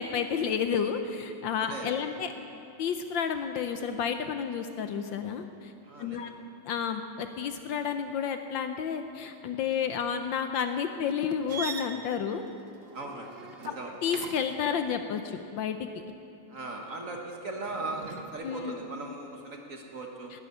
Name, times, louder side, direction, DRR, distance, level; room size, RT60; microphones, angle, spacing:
voice 1, 0.0-2.3 2.8-5.7 6.0-6.3 6.6-12.4 13.6-13.7 14.0-15.8 18.4-18.8, left 7 dB, 70° left, 7 dB, 1.3 m, -31 dB
voice 2, 1.6-2.0 5.8-6.3 12.9-13.3 13.6-13.9 16.5-20.3, right 2 dB, 45° right, 1 dB, 1.4 m, -38 dB
sound 1, 11.5-14.6 17.6-18.3, right 5 dB, 75° right, 0.5 m, -41 dB
12.0 x 11.5 x 9.7 m, 2.7 s
omnidirectional pair, 2.4 m